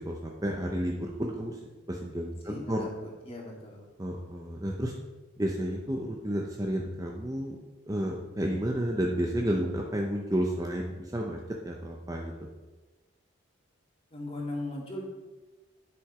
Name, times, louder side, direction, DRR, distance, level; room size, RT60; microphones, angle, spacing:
voice 1, 0.0-1.6 1.9-2.9 4.0-4.9 5.4-7.6 7.9-12.3, equal, 15° right, 0 dB, 0.8 m, -31 dB
voice 2, 2.4-3.8 14.1-15.0, left 1 dB, 30° left, -1 dB, 2.2 m, -38 dB
11.0 x 6.6 x 4.9 m, 1.2 s
head